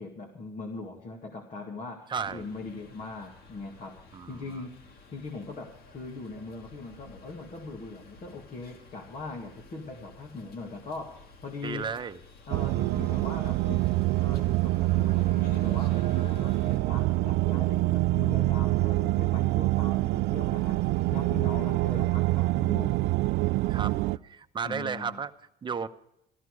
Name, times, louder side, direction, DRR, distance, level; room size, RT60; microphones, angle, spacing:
voice 1, 0.0-4.9 5.1-11.9 12.5-13.9 14.2-23.0 24.6-25.2, left 3 dB, 45° left, 1 dB, 2.2 m, -41 dB
sound 1, 2.1-16.8, left 3 dB, 65° left, 2.2 m, -52 dB
voice 2, 2.1-2.5 4.1-4.6 11.6-12.2 23.7-23.9 24.2-25.3 25.6-25.9, right 6 dB, 30° right, 8 dB, 0.9 m, -33 dB
sound 2, 12.5-24.2, right 19 dB, 85° right, 0.4 m, -26 dB
14.0 x 13.5 x 4.8 m, 0.81 s
cardioid pair, 110°, 17 cm